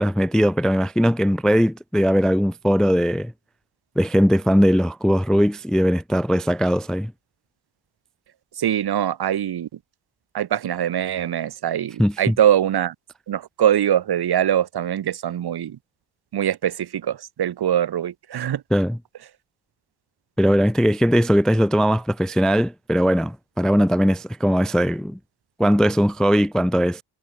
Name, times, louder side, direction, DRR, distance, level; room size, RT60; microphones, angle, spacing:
voice 1, 0.0-3.3 4.0-7.1 12.0-12.4 18.7-19.0 20.4-25.2 25.6-27.0, equal, ahead, 0.4 m, -19 dB
voice 2, 8.6-9.7 10.3-12.9 13.3-15.8 16.3-18.6, right 10 dB, 55° right, 1.1 m, -22 dB
cardioid pair, 130°, 47 cm